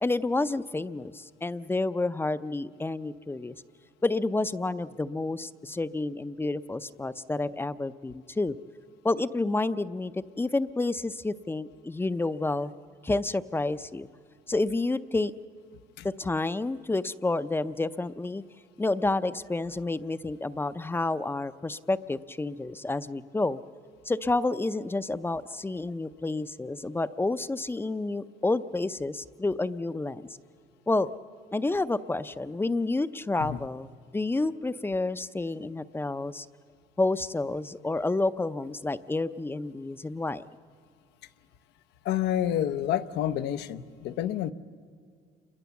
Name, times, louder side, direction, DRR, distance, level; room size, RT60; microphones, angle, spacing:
voice 1, 0.0-3.6 4.0-8.6 9.0-12.7 13.0-14.1 14.5-15.3 16.0-18.4 18.8-23.6 24.0-30.3 30.9-31.1 31.5-36.5 37.0-40.5, left 2 dB, 15° left, 14 dB, 0.5 m, -29 dB
voice 2, 42.0-44.5, left 11 dB, 85° left, 13 dB, 0.9 m, -29 dB
28.0 x 22.0 x 7.1 m, 2.1 s
cardioid pair, 110°, 17 cm